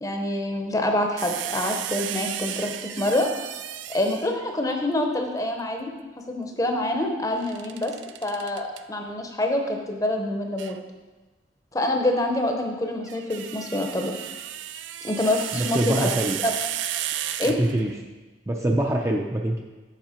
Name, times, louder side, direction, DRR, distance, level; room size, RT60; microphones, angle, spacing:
voice 1, 0.0-3.3 3.9-5.9 6.3-7.9 8.2-10.8 11.7-14.1 15.0-16.1 16.4-16.5 17.4-17.6, left 1 dB, 20° left, 3 dB, 0.7 m, -26 dB
sound 1, 1.2-4.5 7.4-8.8 10.6-10.8 12.9-18.0, right 11 dB, 85° right, 0.4 m, -33 dB
voice 2, 15.5-16.4 17.6-17.9 18.5-19.6, right 1 dB, 15° right, 1 dB, 0.5 m, -24 dB
7.5 x 5.8 x 4.3 m, 1.2 s
head